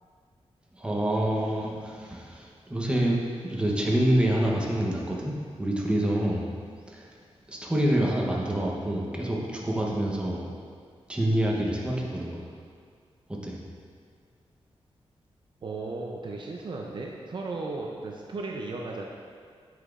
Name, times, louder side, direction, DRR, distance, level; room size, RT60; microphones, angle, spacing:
voice 1, 0.8-6.5 6.9-7.1 7.5-10.4 11.1-12.5 13.3-13.6, right 1 dB, 10° right, -3 dB, 0.8 m, -27 dB
voice 2, 15.6-19.1, right 3 dB, 50° right, -1 dB, 0.5 m, -35 dB
8.1 x 5.9 x 2.5 m, 2.1 s
wide cardioid pair, 150°, 10 cm